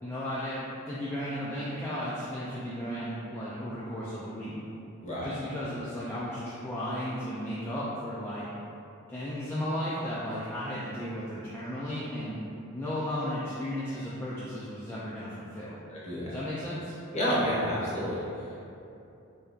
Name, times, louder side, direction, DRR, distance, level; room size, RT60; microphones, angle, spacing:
voice 1, 0.0-4.6 5.2-8.5 9.1-12.4 12.7-15.8 16.3-16.9, equal, 10° left, -10 dB, 0.3 m, -35 dB
voice 2, 15.9-16.3 17.1-18.2, equal, 30° left, -8 dB, 0.8 m, -29 dB
3.3 x 2.7 x 3.6 m, 2.7 s
head